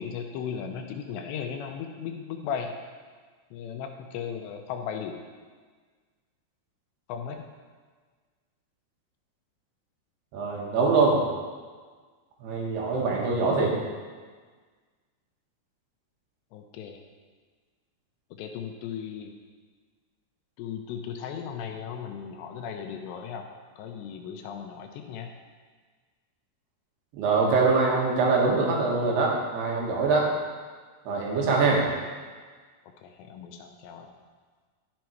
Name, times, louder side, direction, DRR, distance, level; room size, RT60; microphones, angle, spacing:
voice 1, 0.0-2.7 3.5-5.1 7.1-7.4 16.5-17.0 18.4-19.3 20.6-23.5 23.8-25.3 33.0-34.1, left 7 dB, 90° left, 4 dB, 2.8 m, -36 dB
voice 2, 10.3-11.2 12.4-13.8 27.2-30.3 31.1-31.8, right 4 dB, 75° right, -2 dB, 3.4 m, -23 dB
11.5 x 7.5 x 4.6 m, 1.5 s
omnidirectional pair, 5.0 m